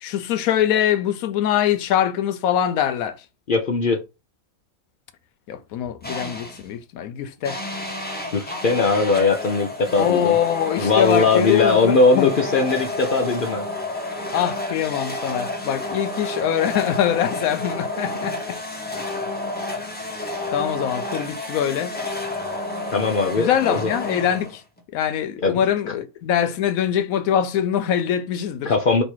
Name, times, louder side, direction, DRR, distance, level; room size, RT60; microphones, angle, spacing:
voice 1, 0.0-3.2 5.5-7.6 10.0-12.3 14.3-18.6 20.5-22.0 23.4-24.6 24.9-28.7, left 10 dB, 80° left, 1.0 m, -23 dB
voice 2, 3.5-4.0 8.3-10.4 10.8-13.7 22.9-23.9 25.4-25.6 25.9-26.0 28.6-29.0, left 3 dB, 60° left, 0.5 m, -20 dB
sound 1, 6.0-6.7 7.4-24.8, left 2 dB, 10° left, 0.5 m, -30 dB
3.2 x 2.6 x 4.4 m
omnidirectional pair, 1.5 m